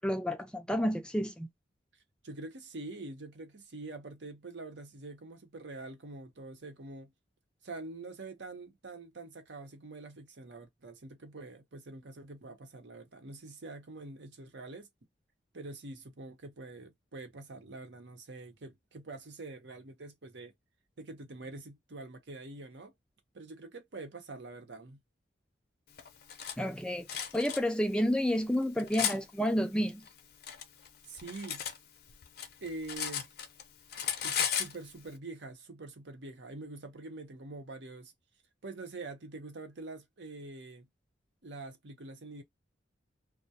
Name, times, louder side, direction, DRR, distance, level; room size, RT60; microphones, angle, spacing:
voice 1, 0.0-1.5 26.6-30.0, equal, 5° left, 0.4 m, -30 dB
voice 2, 2.2-7.1 7.6-14.9 15.5-20.6 21.0-22.9 23.3-25.0 31.0-31.7 32.6-33.3 34.2-38.1 38.6-40.9 41.4-42.4, right 2 dB, 75° right, 0.8 m, -45 dB
Cutlery silverware, 26.0-26.6 27.1-27.6 28.3-29.2 30.1-31.8 32.1-33.6 33.9-34.7, left 8 dB, 55° left, 0.5 m, -35 dB
2.3 x 2.1 x 2.7 m
head